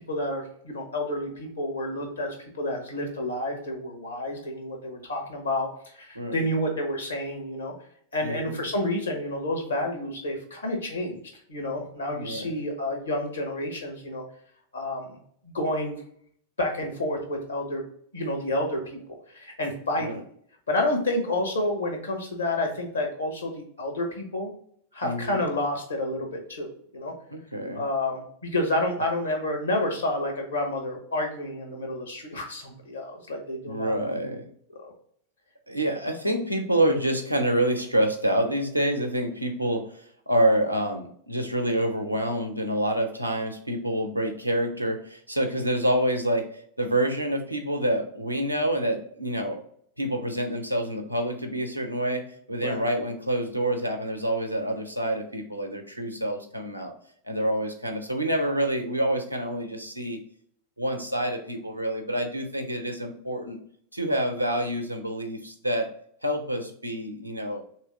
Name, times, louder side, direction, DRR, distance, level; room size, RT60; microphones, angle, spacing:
voice 1, 0.1-7.7 8.1-11.2 11.5-14.2 14.7-15.1 15.4-16.0 16.6-17.8 18.1-19.0 19.3-20.2 20.7-24.5 24.9-26.7 26.9-27.1 27.7-33.9 34.8-34.9 52.6-52.8, left 1 dB, 80° left, 2 dB, 1.2 m, -29 dB
voice 2, 8.2-8.5 12.1-12.5 20.0-20.2 25.0-25.4 27.3-27.8 33.7-34.5 35.7-46.5 46.8-49.6 50.0-56.9 57.2-60.2 60.8-63.6 63.9-65.9 66.2-67.6, right 1 dB, 90° right, 3 dB, 0.7 m, -27 dB
3.4 x 3.1 x 4.8 m, 0.64 s
figure-of-eight pair, 90°, 0 cm